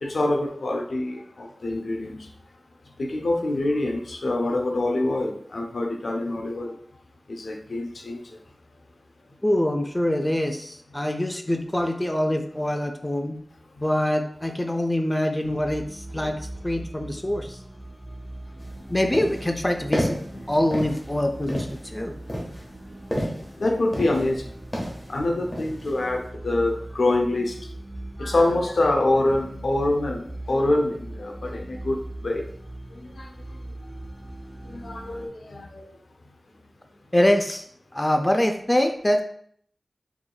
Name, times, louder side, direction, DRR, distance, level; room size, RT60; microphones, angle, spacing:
voice 1, 0.0-2.3 3.0-6.8 7.3-8.2 20.3-20.4 23.2-24.6 25.1-27.6 28.2-32.5 32.9-33.3 34.7-35.9, left 2 dB, 85° left, 3 dB, 0.5 m, -25 dB
voice 2, 9.4-13.4 13.8-17.6 18.9-20.2 20.5-22.1 37.1-37.6 37.9-39.2, left 1 dB, 15° left, 5 dB, 0.4 m, -24 dB
sound 1, 15.4-35.3, right 1 dB, 25° right, 1.5 m, -40 dB
sound 2, 18.6-18.7 19.1-19.5 19.9-20.3 20.7-21.1 21.5-21.8 22.3-23.5 23.9-24.4 24.7-25.1 25.5-25.9, equal, 35° left, 1.1 m, -29 dB
4.7 x 3.0 x 2.2 m, 0.63 s
wide cardioid pair, 80°, 0 cm